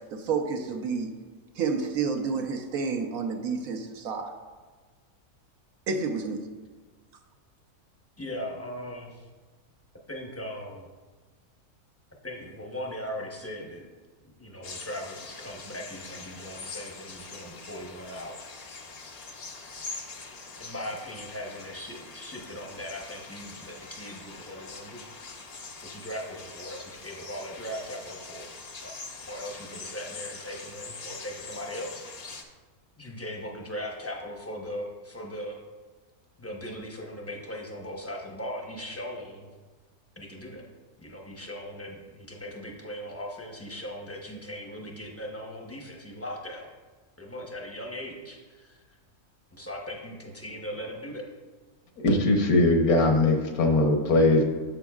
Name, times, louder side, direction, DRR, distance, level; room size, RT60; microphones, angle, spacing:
voice 1, 0.1-1.1 1.6-4.3 5.9-6.4, right 5 dB, 70° right, 4 dB, 1.1 m, -29 dB
voice 2, 8.2-9.1 10.1-10.9 12.2-13.9 14.2-18.4 20.6-25.0 25.9-28.5 28.8-28.9 29.3-32.1 33.0-35.6 36.4-39.5 40.2-40.7 41.0-46.7 47.2-48.8 49.5-51.2, equal, 15° left, -1 dB, 0.6 m, -39 dB
sound 1, 14.6-32.4, left 4 dB, 55° left, 0.4 m, -43 dB
voice 3, 52.0-54.4, left 2 dB, 75° left, 3 dB, 1.4 m, -21 dB
9.6 x 7.0 x 2.4 m, 1.3 s
omnidirectional pair, 1.6 m